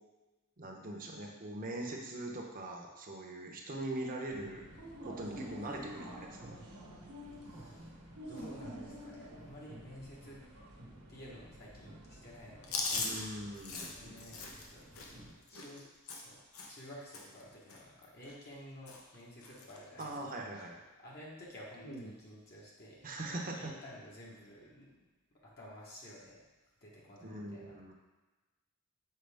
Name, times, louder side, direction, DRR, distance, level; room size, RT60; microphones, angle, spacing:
voice 1, 0.6-4.6 5.0-6.6 12.9-13.9 20.0-20.8 23.0-23.7 27.2-27.9, right 1 dB, 40° right, 0 dB, 0.9 m, -41 dB
sound 1, 4.3-15.3, equal, 85° right, 1.1 m, -50 dB
voice 2, 7.3-10.4 11.1-12.9 13.7-15.9 16.2-16.4 16.7-20.4 21.0-24.9 25.4-26.4 26.8-27.7, equal, 45° left, -5 dB, 1.2 m, -52 dB
Chewing mastication, 12.6-16.9 17.1-17.4 17.7-18.6 18.9-19.2 19.4-20.1 20.5-20.7 21.7-22.1, left 3 dB, 70° left, 0.8 m, -41 dB
6.6 x 4.7 x 3.5 m, 1.2 s
head